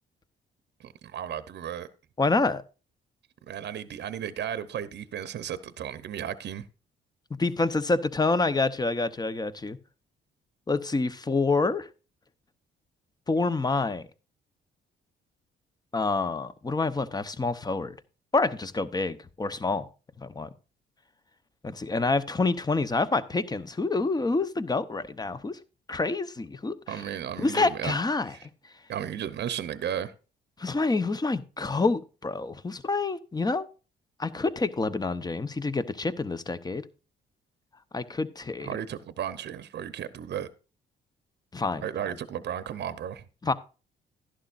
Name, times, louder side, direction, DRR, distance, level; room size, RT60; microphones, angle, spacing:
voice 1, 0.8-1.9 3.5-6.7 26.9-27.9 28.2-28.5 28.9-30.1 38.6-40.5 41.8-43.2, right 9 dB, 60° right, 0.8 m, -34 dB
voice 2, 2.2-2.6 7.4-9.8 10.7-11.9 13.3-14.0 15.9-17.9 18.3-19.9 20.2-20.5 21.6-25.6 25.9-26.8 27.4-28.5 30.6-33.7 34.2-36.8 37.9-38.7 41.5-41.8 43.4-43.5, left 3 dB, 20° left, 0.9 m, -27 dB
11.5 x 11.5 x 2.5 m
cardioid pair, 90°, 20 cm